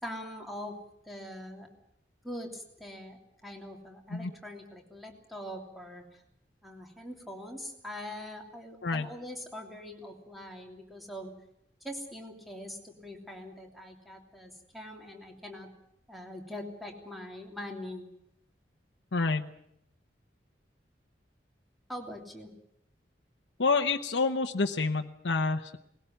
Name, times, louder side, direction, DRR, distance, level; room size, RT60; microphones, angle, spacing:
voice 1, 0.0-0.8 1.1-1.7 2.2-6.0 6.6-11.3 11.8-15.7 16.1-18.1 21.9-22.5, left 1 dB, ahead, 1 dB, 3.1 m, -43 dB
voice 2, 19.1-19.5 23.6-25.8, left 4 dB, 80° left, 4 dB, 0.9 m, -28 dB
20.0 x 16.5 x 9.1 m, 0.75 s
head